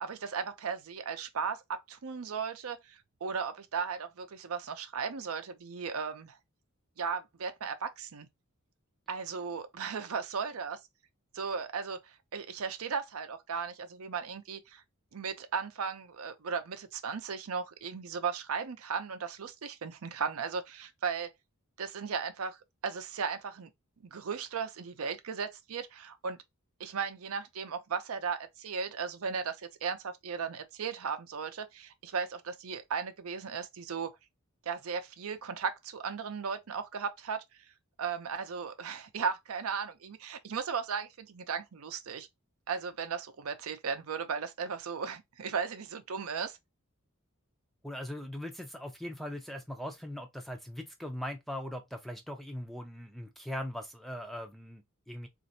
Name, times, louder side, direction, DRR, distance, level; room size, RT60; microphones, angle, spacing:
voice 1, 0.0-6.4 7.0-8.3 9.1-10.8 11.3-14.8 15.1-21.3 21.8-22.6 22.8-23.7 24.0-26.4 26.8-34.2 34.7-37.4 38.0-42.3 42.7-46.6, right 6 dB, 75° right, 0.6 m, -36 dB
voice 2, 47.8-55.3, left 1 dB, ahead, 0.5 m, -40 dB
4.0 x 2.5 x 2.7 m
head